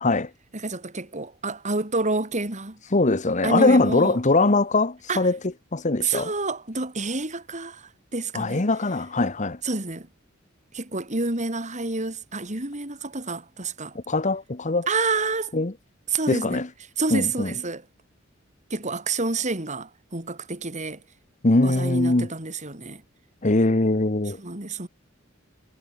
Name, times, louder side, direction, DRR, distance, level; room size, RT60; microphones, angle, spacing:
voice 1, 0.5-2.8 3.4-4.2 5.1-5.3 6.0-8.6 9.6-10.1 10.7-14.0 14.9-15.5 16.1-16.6 17.0-17.8 18.7-21.0 21.6-23.0 24.4-24.9, right 3 dB, 35° right, 3.6 m, -28 dB
voice 2, 2.9-5.4 5.7-6.3 8.3-9.6 13.9-14.9 15.5-15.7 16.3-16.7 17.1-17.5 21.4-22.3 23.4-24.4, left 2 dB, 35° left, 1.1 m, -21 dB
head